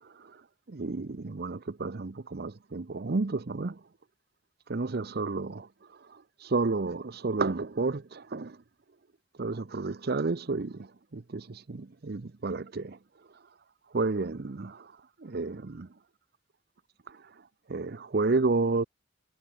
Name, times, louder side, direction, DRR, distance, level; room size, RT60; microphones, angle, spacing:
voice 1, 0.0-3.8 4.7-5.5 5.9-8.6 9.4-13.0 13.9-15.9 17.1-18.8, right 3 dB, 55° right, 0.7 m, -31 dB
head